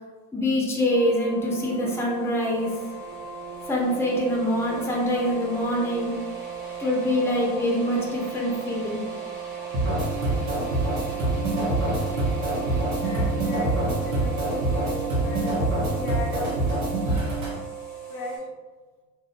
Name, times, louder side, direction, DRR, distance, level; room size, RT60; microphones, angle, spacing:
voice 1, 0.3-2.8 3.7-6.2 6.8-9.1, equal, 5° left, -2 dB, 0.5 m, -25 dB
sound 1, 0.9-18.4, right 7 dB, 60° right, 1.0 m, -36 dB
sound 2, 9.7-17.5, right 2 dB, 85° right, 0.9 m, -25 dB
voice 2, 12.7-15.5 15.9-16.5 18.1-18.5, left 2 dB, 90° left, -1 dB, 0.6 m, -36 dB
2.6 x 2.1 x 2.4 m, 1.4 s
hypercardioid pair, 75°, 42 cm